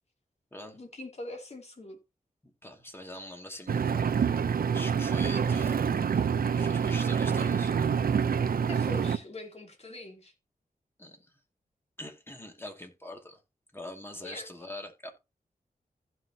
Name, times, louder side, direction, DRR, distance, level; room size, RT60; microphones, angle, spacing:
voice 1, 0.7-2.0 8.7-10.3 14.2-14.5, left 2 dB, 45° left, 3.1 m, -42 dB
voice 2, 2.6-4.1 4.7-5.8 6.5-7.7 11.0-11.2 12.0-13.4 13.7-15.1, left 1 dB, 15° left, 2.4 m, -43 dB
Engine, 3.7-9.2, right 7 dB, 75° right, 0.7 m, -27 dB
15.5 x 5.9 x 2.9 m
wide cardioid pair, 80°, 15 cm